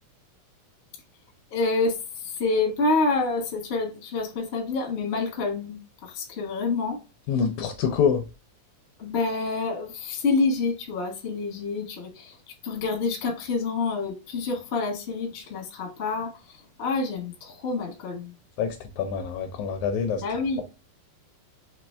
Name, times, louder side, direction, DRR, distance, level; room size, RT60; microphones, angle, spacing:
voice 1, 1.5-2.0 2.4-5.8 6.0-7.0 9.0-12.3 12.6-16.3 16.8-18.3 20.1-20.6, left 3 dB, 45° left, 0.8 m, -27 dB
voice 2, 7.3-8.2 18.6-20.2, left 7 dB, 80° left, 1.7 m, -26 dB
5.2 x 2.9 x 3.3 m
omnidirectional pair, 3.7 m